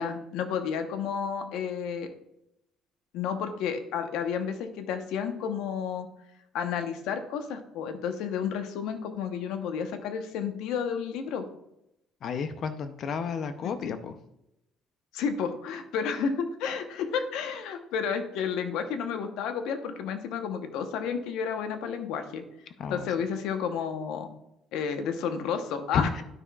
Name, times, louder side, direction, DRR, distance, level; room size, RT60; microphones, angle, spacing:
voice 1, 0.0-2.1 3.1-6.1 6.5-11.4 13.8-14.0 15.1-22.4 22.9-24.3 24.7-26.1, left 7 dB, 80° left, 7 dB, 0.9 m, -31 dB
voice 2, 12.2-14.2 22.8-23.1 25.9-26.2, left 6 dB, 50° left, 10 dB, 0.5 m, -31 dB
12.0 x 6.0 x 2.3 m, 0.86 s
cardioid pair, 130°, 0 cm